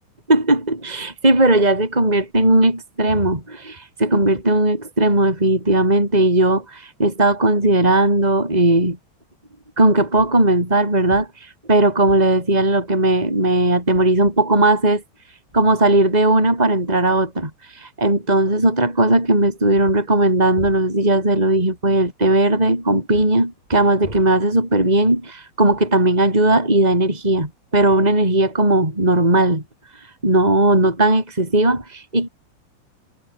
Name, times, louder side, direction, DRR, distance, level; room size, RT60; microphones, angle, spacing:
voice 1, 0.3-9.0 9.8-11.3 11.7-15.0 15.5-29.6 30.2-32.3, right 1 dB, 5° right, 7.8 m, -17 dB
omnidirectional pair, 5.7 m